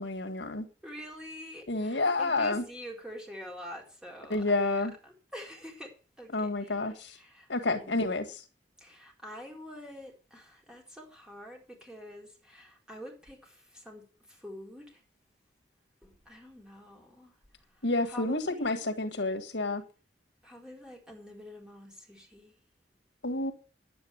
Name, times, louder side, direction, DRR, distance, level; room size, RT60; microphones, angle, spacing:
voice 1, 0.0-0.7 1.7-2.7 4.3-4.9 6.3-7.2 7.5-8.4 17.8-19.8 23.2-23.5, left 2 dB, 80° left, 1.7 m, -29 dB
voice 2, 0.8-6.8 7.0-8.1 8.8-15.0 16.0-17.3 18.1-18.8 20.4-22.5, equal, 5° right, 4.3 m, -46 dB
10.5 x 9.1 x 7.1 m
head